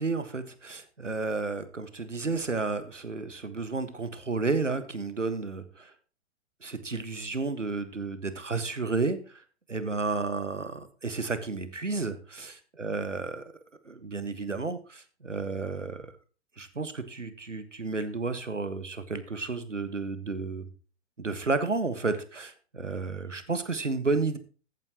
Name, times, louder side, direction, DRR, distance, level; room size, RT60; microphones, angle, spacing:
voice 1, 0.0-5.9 6.6-9.4 9.7-13.4 13.8-16.1 16.6-20.7 21.2-24.4, right 3 dB, 85° right, 11 dB, 1.5 m, -32 dB
14.5 x 9.0 x 3.0 m, 0.37 s
figure-of-eight pair, 110°, 36 cm